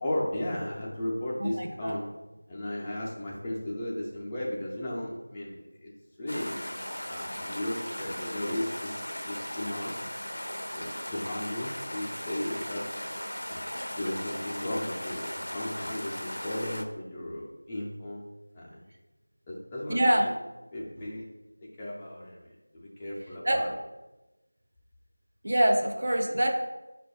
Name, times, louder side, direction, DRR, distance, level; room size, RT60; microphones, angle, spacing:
voice 1, 0.0-2.1 2.5-5.9 6.2-6.5 7.0-10.0 10.7-12.9 13.5-18.2 18.5-18.8 19.5-20.3 20.7-21.3 21.6-23.7, left 1 dB, 10° left, -5 dB, 0.4 m, -35 dB
voice 2, 1.4-2.0 19.9-20.3 23.5-23.7 25.4-26.5, right 1 dB, 45° right, 3 dB, 0.5 m, -25 dB
sound 1, 6.3-16.8, left 1 dB, 75° left, 0.4 m, -37 dB
4.5 x 2.2 x 4.0 m, 1.0 s
figure-of-eight pair, 175°, 0 cm